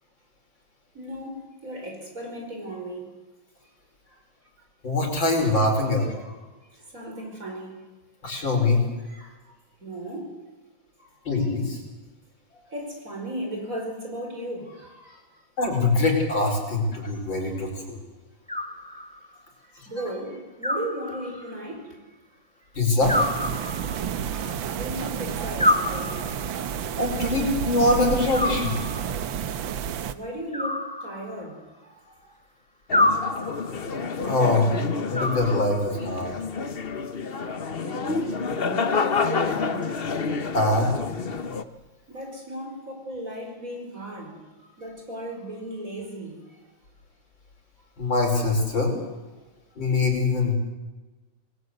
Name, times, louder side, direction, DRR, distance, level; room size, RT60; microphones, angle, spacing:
voice 1, 0.9-3.1 4.1-4.2 5.9-7.8 9.0-9.5 9.8-10.3 11.4-11.5 12.5-15.4 17.3-17.6 19.9-22.0 23.5-23.8 24.1-26.8 27.0-27.6 30.1-32.3 36.2-36.4 37.4-39.9 42.1-46.6, right 1 dB, 35° right, 2 dB, 5.8 m, -37 dB
voice 2, 4.8-6.1 8.2-8.8 11.3-11.8 15.6-18.0 19.8-19.9 22.8-23.2 27.0-28.8 34.2-36.4 40.5-40.9 48.0-49.0 49.8-50.5, left 2 dB, 60° left, 2 dB, 5.8 m, -23 dB
Animal, 18.5-19.4 20.6-21.6 23.1-24.2 25.6-26.6 28.3-29.2 30.5-31.6 32.9-33.8 35.1-36.1, left 1 dB, 5° left, 1.4 m, -27 dB
sound 1, 23.0-30.1, right 8 dB, 70° right, 1.7 m, -30 dB
sound 2, 32.9-41.6, left 5 dB, 40° left, 0.9 m, -29 dB
27.5 x 20.0 x 8.1 m, 1.2 s
omnidirectional pair, 2.3 m